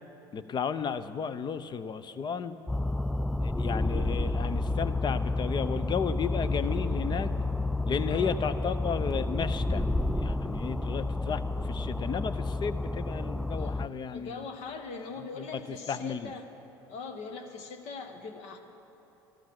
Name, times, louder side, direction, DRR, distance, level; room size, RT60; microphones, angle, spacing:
voice 1, 0.3-2.6 3.4-7.3 7.9-9.8 10.2-14.4 15.4-15.5 15.9-16.3, left 6 dB, 35° left, 13 dB, 0.7 m, -33 dB
sound 1, 2.7-13.9, left 2 dB, 5° left, 0.4 m, -30 dB
voice 2, 13.6-16.5 16.9-18.6, left 4 dB, 60° left, 5 dB, 1.4 m, -41 dB
14.0 x 13.0 x 6.0 m, 3.0 s
hypercardioid pair, 65°, 13 cm